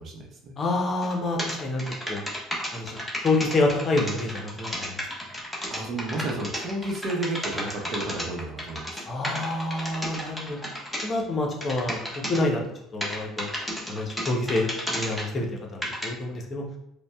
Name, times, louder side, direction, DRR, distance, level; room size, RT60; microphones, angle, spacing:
voice 1, 0.0-0.5 5.7-9.0, right 2 dB, 50° right, 1 dB, 0.8 m, -32 dB
voice 2, 0.6-1.8 2.1-2.2 2.7-5.0 9.1-10.6 11.0-12.6 12.9-13.5 13.9-15.5 15.7-16.6, left 2 dB, 35° left, 1 dB, 0.8 m, -27 dB
sound 1, 1.0-1.1 1.4-11.0 11.6-12.4 13.0-15.3 15.8-16.0, equal, 5° left, 1.2 m, -32 dB
5.0 x 2.2 x 2.3 m, 0.79 s
hypercardioid pair, 65°, 0 cm